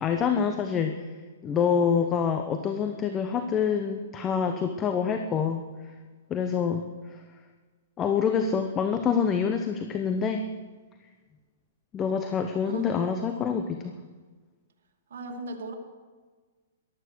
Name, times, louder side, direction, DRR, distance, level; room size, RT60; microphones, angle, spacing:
voice 1, 0.0-1.0 1.4-5.7 6.3-6.9 8.0-10.5 11.9-13.9, left 6 dB, 25° left, 6 dB, 1.0 m, -26 dB
voice 2, 12.6-13.0 13.3-13.5 15.1-15.7, right 1 dB, 70° right, 2 dB, 2.4 m, -36 dB
15.0 x 12.0 x 6.4 m, 1.4 s
hypercardioid pair, 130°, 0 cm